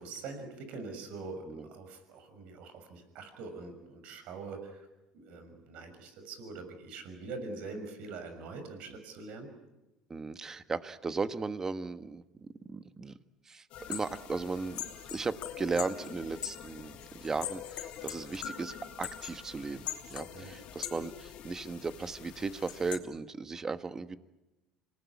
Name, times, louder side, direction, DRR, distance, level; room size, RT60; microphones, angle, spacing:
voice 1, 0.0-4.9 5.1-9.5 20.3-20.6, right 3 dB, 65° right, 8 dB, 6.4 m, -44 dB
voice 2, 10.1-12.2 12.7-13.1 13.5-13.6 13.9-14.8 15.1-24.2, right 4 dB, 25° right, 11 dB, 1.4 m, -36 dB
sound 1, 13.7-23.0, left 10 dB, 60° left, 3.0 m, -42 dB
26.0 x 19.5 x 9.7 m, 1.0 s
supercardioid pair, 105°, 2 cm